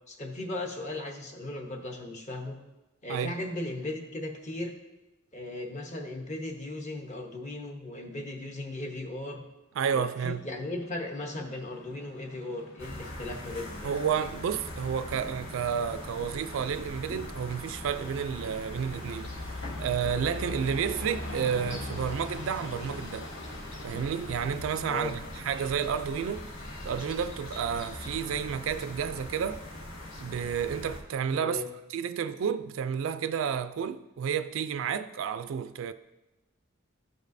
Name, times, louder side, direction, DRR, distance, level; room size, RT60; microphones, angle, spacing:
voice 1, 0.1-2.6 3.0-4.7 5.3-9.4 9.9-13.9 24.9-25.2 31.4-31.7, left 1 dB, 35° left, 0.8 m, -37 dB
voice 2, 9.8-10.5 13.8-23.3 23.8-26.5 26.8-29.6 30.2-31.6 31.9-35.9, right 7 dB, 65° right, 0.3 m, -31 dB
Train, 10.0-28.5, left 2 dB, 60° left, 0.9 m, -46 dB
sound 1, 12.8-31.0, left 1 dB, 90° left, 1.5 m, -41 dB
13.0 x 5.2 x 2.6 m
head